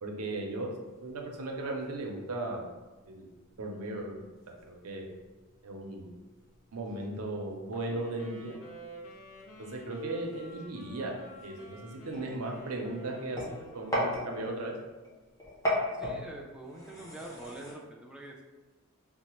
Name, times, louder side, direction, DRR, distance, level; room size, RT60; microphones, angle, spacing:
voice 1, 0.0-0.7 1.0-2.7 3.1-3.3 3.6-4.2 4.6-5.1 5.6-6.1 6.7-8.5 9.6-11.2 11.4-14.7, right 2 dB, 90° right, 1 dB, 0.6 m, -36 dB
sound 1, 0.8-17.7, left 1 dB, 15° left, 0.7 m, -41 dB
Wind instrument woodwind instrument, 7.7-14.9, right 1 dB, 65° left, 0.7 m, -51 dB
voice 2, 15.9-18.4, right 1 dB, 5° right, -1 dB, 0.3 m, -45 dB
4.0 x 2.1 x 3.0 m, 1.2 s
head